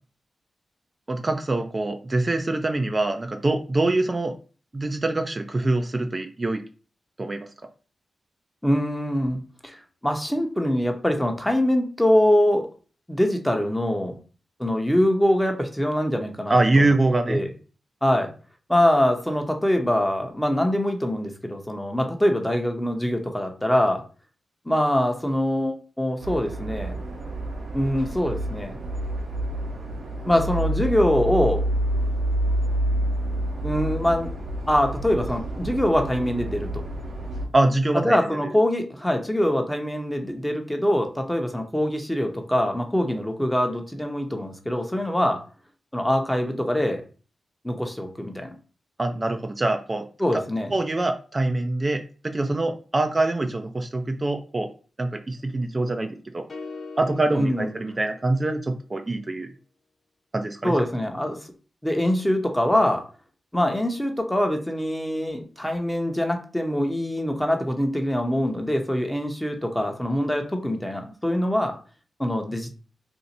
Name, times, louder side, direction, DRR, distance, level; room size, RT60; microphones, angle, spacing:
voice 1, 1.1-4.3 4.7-6.6 7.2-7.5 16.5-17.4 37.5-38.2 49.0-50.1 50.7-54.7 55.0-56.5 57.0-59.5 60.3-60.8, right 2 dB, 35° right, 6 dB, 0.4 m, -24 dB
voice 2, 8.6-9.8 10.0-12.7 13.1-14.2 14.6-16.9 17.3-17.5 18.0-18.3 18.7-24.0 24.7-27.0 27.7-28.8 30.2-31.6 33.6-34.3 34.7-36.8 37.9-45.4 45.9-47.0 47.6-48.5 50.2-50.7 57.3-57.7 60.6-61.4 61.8-63.0 63.5-71.8 72.2-72.7, left 1 dB, 10° left, 4 dB, 0.8 m, -23 dB
sound 1, 26.2-37.5, right 1 dB, 85° right, 0.9 m, -28 dB
sound 2, 56.5-58.8, left 3 dB, 55° left, 0.7 m, -41 dB
2.7 x 2.4 x 4.0 m, 0.38 s
cardioid pair, 50°, 0 cm